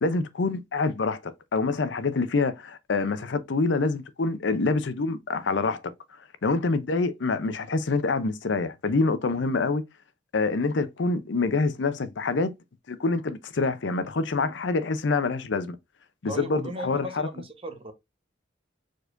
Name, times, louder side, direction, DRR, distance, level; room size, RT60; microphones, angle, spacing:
voice 1, 0.0-5.8 6.4-9.8 10.3-12.5 12.9-15.8 16.2-17.3, left 3 dB, 70° left, 0.6 m, -26 dB
voice 2, 16.3-17.9, equal, 30° right, 0.9 m, -37 dB
4.6 x 4.5 x 2.5 m
head